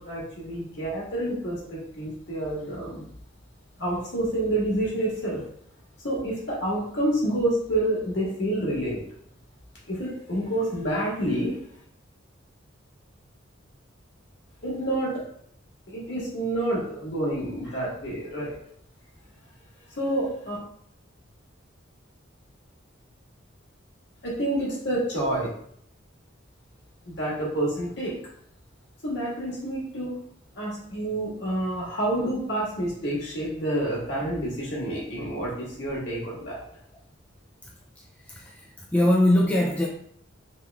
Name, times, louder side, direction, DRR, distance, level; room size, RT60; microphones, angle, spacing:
voice 1, 0.0-3.0 3.8-5.4 6.0-9.0 9.9-11.6 14.6-15.2 15.9-18.6 19.9-20.6 24.2-25.5 27.0-28.2 29.0-30.2 30.5-36.6, right 1 dB, 60° left, -4 dB, 1.7 m, -28 dB
voice 2, 38.0-39.9, left 1 dB, 5° left, -2 dB, 0.4 m, -23 dB
3.7 x 3.0 x 3.4 m, 0.65 s
head